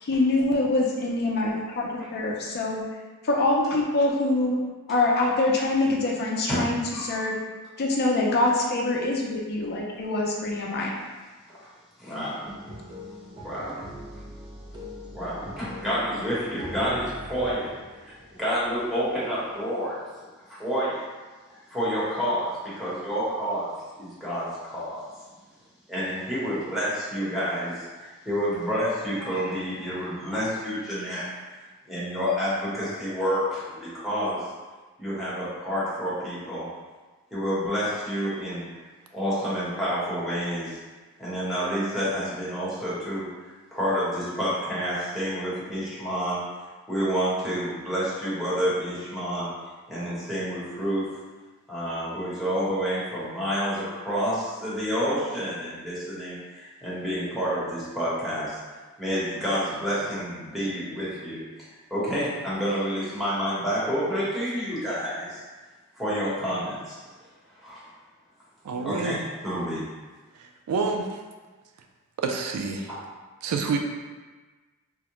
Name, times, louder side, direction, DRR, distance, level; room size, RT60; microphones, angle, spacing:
voice 1, 0.0-2.8 3.2-4.6 4.9-7.3 7.8-11.0, left 2 dB, 45° left, -2 dB, 0.4 m, -24 dB
voice 2, 6.9-7.2 12.0-12.4 13.4-13.8 15.1-17.7 18.0-20.1 20.5-21.0 21.7-25.0 25.9-31.3 31.9-34.4 35.0-36.7 37.3-38.7 39.1-40.8 41.2-43.3 43.7-46.4 46.9-49.5 49.9-51.1 51.7-58.6 59.0-61.4 61.9-65.4 66.0-66.9 67.6-67.8 68.8-69.8 72.9-73.0, equal, ahead, -10 dB, 1.0 m, -29 dB
sound 1, 12.4-19.6, left 1 dB, 20° right, 0.4 m, -42 dB
voice 3, 68.6-69.1 70.4-71.1 72.2-72.9 73.4-73.8, right 4 dB, 80° right, 3 dB, 0.3 m, -28 dB
3.5 x 2.1 x 2.9 m, 1.3 s
head